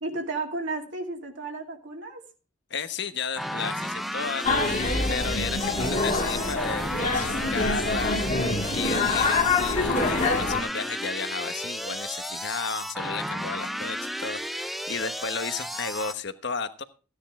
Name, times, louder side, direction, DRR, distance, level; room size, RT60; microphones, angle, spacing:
voice 1, 0.0-2.2 8.8-9.3, right 3 dB, 60° right, 2 dB, 2.4 m, -33 dB
voice 2, 2.7-4.5 5.1-8.2 8.7-16.8, left 5 dB, 55° left, 11 dB, 1.1 m, -33 dB
sound 1, 3.4-16.1, equal, ahead, 0.5 m, -33 dB
sound 2, 4.4-10.6, left 3 dB, 35° left, 2.0 m, -25 dB
15.5 x 10.0 x 3.6 m, 0.36 s
head